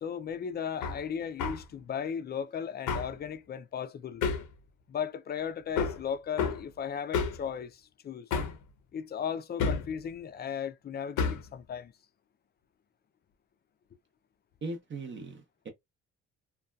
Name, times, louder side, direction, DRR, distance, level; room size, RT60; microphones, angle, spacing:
voice 1, 0.0-4.2 4.9-8.3 8.9-11.9, left 7 dB, 35° left, 0.4 m, -36 dB
Hammer, 0.8-1.0 1.4-1.6 2.9-3.1 4.2-4.5 5.8-6.0 6.4-6.6 7.1-7.4 8.3-8.6 9.6-9.9 11.2-11.5, left 5 dB, 85° left, 0.7 m, -30 dB
voice 2, 14.6-15.7, right 2 dB, 40° right, 0.7 m, -39 dB
2.7 x 2.3 x 2.2 m
cardioid pair, 90°, 30 cm